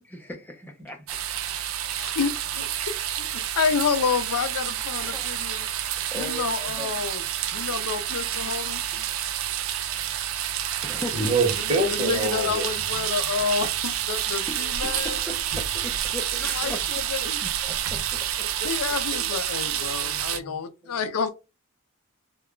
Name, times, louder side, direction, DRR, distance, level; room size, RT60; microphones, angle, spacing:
voice 1, 0.1-1.2 4.9-5.3 6.1-6.9 10.8-11.3 14.3-15.4 15.8-16.8 17.4-17.8 18.3-18.7, left 1 dB, 10° left, 0.4 m, -38 dB
sound 1, 1.1-20.4, right 11 dB, 65° right, 0.3 m, -29 dB
voice 2, 2.0-2.3 2.9-3.3 3.6-5.6 6.2-7.2 7.5-8.8 12.0-15.2 16.4-17.4 18.6-21.3, left 6 dB, 85° left, 0.4 m, -29 dB
voice 3, 8.1-9.1 11.1-12.7 19.1-19.3 19.8-20.6 20.8-20.9, right 2 dB, 25° right, 0.9 m, -28 dB
2.3 x 2.2 x 3.7 m
head